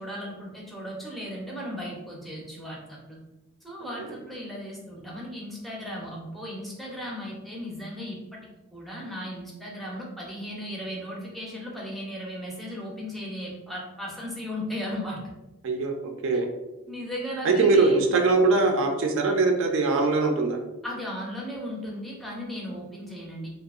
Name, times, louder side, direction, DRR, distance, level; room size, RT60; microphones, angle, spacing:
voice 1, 0.0-3.2 3.6-8.4 8.7-15.3 16.9-18.0 20.8-23.5, equal, ahead, -4 dB, 0.5 m, -36 dB
voice 2, 17.4-20.6, right 3 dB, 60° right, 4 dB, 0.3 m, -21 dB
2.7 x 2.0 x 2.3 m, 1.0 s
head